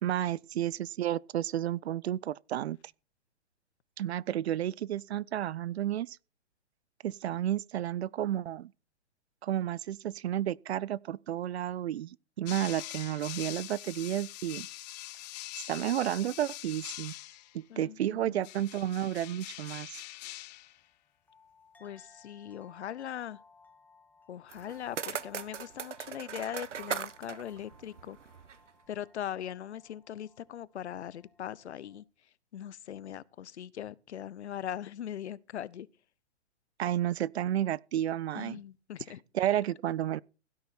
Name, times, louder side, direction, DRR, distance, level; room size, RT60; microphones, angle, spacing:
voice 1, 0.0-2.8 4.0-6.2 7.0-8.7 9.4-14.7 15.7-17.1 17.5-20.0 36.8-38.6 39.3-40.2, right 11 dB, 65° right, 0.6 m, -32 dB
sound 1, 12.5-17.6 18.4-20.8, left 17 dB, 35° left, 0.9 m, -43 dB
voice 2, 17.7-18.4 21.8-23.4 24.3-28.2 28.9-32.0 32.5-35.9 38.3-39.2 39.5-39.6, left 10 dB, 70° left, 0.9 m, -40 dB
sound 2, 20.4-32.0, left 4 dB, 5° left, 1.3 m, -61 dB
sound 3, 24.5-28.7, right 7 dB, 85° right, 1.1 m, -40 dB
16.5 x 9.6 x 4.3 m
hypercardioid pair, 135°, 35 cm